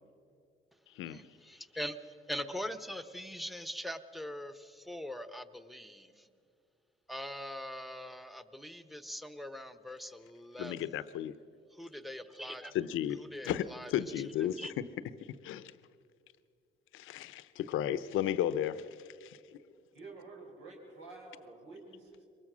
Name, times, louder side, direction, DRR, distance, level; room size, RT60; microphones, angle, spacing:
voice 1, 1.1-6.3 7.1-11.0 11.7-12.7 13.2-13.9 14.6-14.7, equal, ahead, 11 dB, 1.0 m, -42 dB
voice 2, 10.6-11.4 12.7-13.2 13.4-14.8 15.4-15.7 16.9-18.9 19.2-19.4, left 11 dB, 85° left, 15 dB, 0.8 m, -34 dB
voice 3, 19.9-22.2, right 3 dB, 80° right, -1 dB, 4.5 m, -50 dB
23.0 x 20.0 x 6.2 m, 2.3 s
cardioid pair, 90°, 20 cm